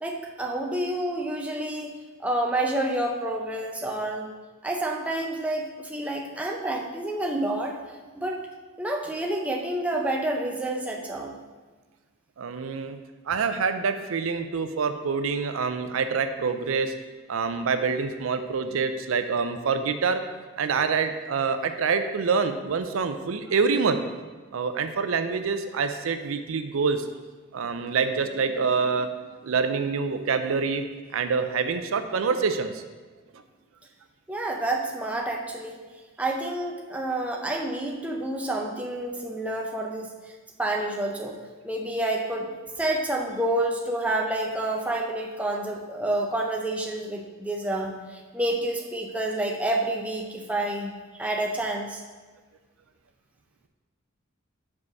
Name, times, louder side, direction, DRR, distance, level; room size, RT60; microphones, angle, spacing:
voice 1, 0.0-4.3 4.6-7.8 8.1-8.4 8.8-11.4 34.3-35.8 36.2-40.1 40.6-41.4 41.6-42.5 42.8-52.0, right 1 dB, 5° right, 0 dB, 0.5 m, -29 dB
voice 2, 12.4-13.0 13.3-16.9 17.3-20.2 20.6-24.0 24.5-27.1 27.5-29.1 29.4-30.8 31.1-32.8, right 5 dB, 75° right, 9 dB, 0.5 m, -26 dB
5.0 x 4.8 x 5.8 m, 1.3 s
head